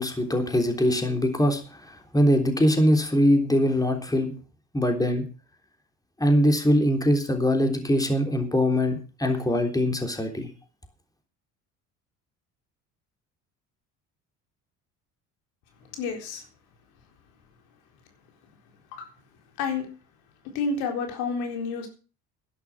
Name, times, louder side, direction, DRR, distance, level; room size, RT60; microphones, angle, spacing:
voice 1, 0.0-4.3 4.7-5.2 6.2-10.5, equal, 10° left, 5 dB, 3.5 m, -22 dB
voice 2, 15.8-16.5 18.9-19.1 19.6-19.9 20.5-21.9, left 4 dB, 80° left, 4 dB, 4.1 m, -29 dB
11.5 x 11.0 x 6.1 m, 0.36 s
supercardioid pair, 75°, 36 cm